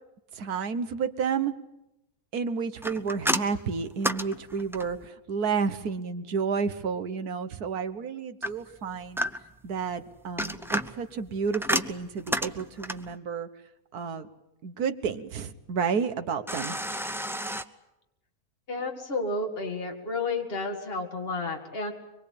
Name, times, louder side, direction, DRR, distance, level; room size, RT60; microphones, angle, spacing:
voice 1, 0.3-1.5 2.3-9.2 9.6-13.5 13.9-14.3 14.6-16.8, right 6 dB, 80° right, 10 dB, 1.7 m, -31 dB
sound 1, 2.8-5.1 8.4-9.7 10.2-13.2 16.5-17.6, equal, 5° right, 0.3 m, -31 dB
voice 2, 18.7-21.9, left 3 dB, 40° left, 2 dB, 2.6 m, -31 dB
24.0 x 22.5 x 8.6 m, 0.89 s
omnidirectional pair, 1.6 m